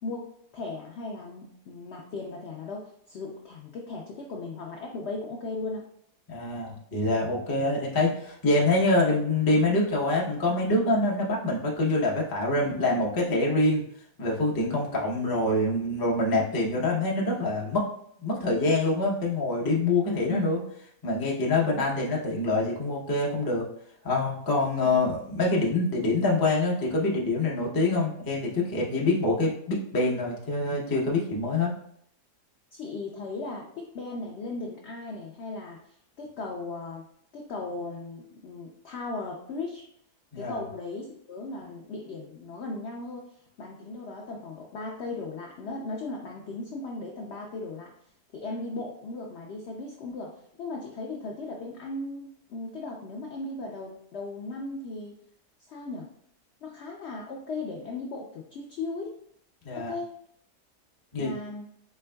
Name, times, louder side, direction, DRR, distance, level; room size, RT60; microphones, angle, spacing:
voice 1, 0.0-5.8 20.3-20.5 32.7-35.8 36.2-37.1 37.3-39.8 40.4-43.3 43.6-47.9 48.3-55.2 55.7-56.1 56.6-59.1 59.7-60.1 61.2-61.7, left 3 dB, 75° left, 0 dB, 0.6 m, -37 dB
voice 2, 6.3-13.8 14.2-17.8 18.2-20.6 21.0-23.7 24.0-31.7 40.3-40.6 59.6-59.9 61.1-61.3, left 2 dB, 30° left, -3 dB, 0.3 m, -25 dB
4.5 x 3.4 x 2.2 m, 0.69 s
omnidirectional pair, 1.7 m